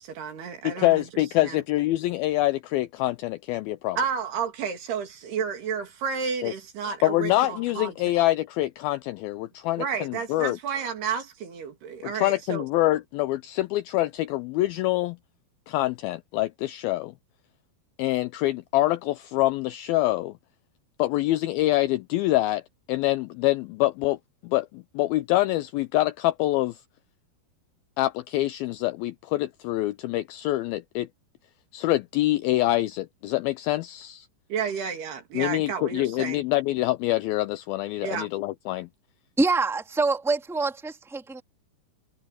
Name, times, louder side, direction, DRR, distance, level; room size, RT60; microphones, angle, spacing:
voice 1, 0.0-1.1 1.4-1.6 4.0-7.9 9.8-12.6 34.5-36.4 38.0-38.3, right 6 dB, 70° right, 4.8 m, -31 dB
voice 2, 0.6-4.0 6.4-6.5 7.0-10.6 12.0-15.2 15.7-17.1 18.0-20.4 21.0-22.6 22.9-24.2 24.4-26.8 28.0-31.1 31.7-34.3 35.3-38.9, left 16 dB, 80° left, 2.1 m, -25 dB
voice 3, 39.4-41.4, right 3 dB, ahead, 1.8 m, -25 dB
omnidirectional pair, 4.8 m